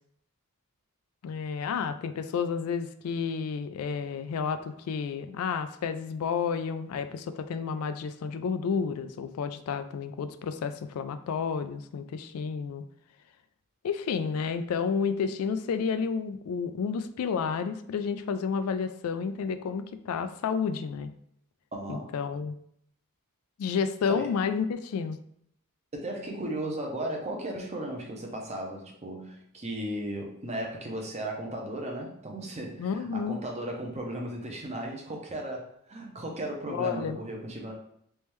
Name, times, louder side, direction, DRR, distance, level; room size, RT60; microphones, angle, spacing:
voice 1, 1.2-12.8 13.8-21.1 21.9-22.5 23.6-25.2 32.8-33.4 36.7-37.2, left 6 dB, 75° left, 10 dB, 0.3 m, -31 dB
voice 2, 21.7-22.1 24.1-24.3 25.9-37.7, right 1 dB, 30° right, 1 dB, 0.7 m, -36 dB
3.4 x 3.2 x 3.1 m, 0.70 s
head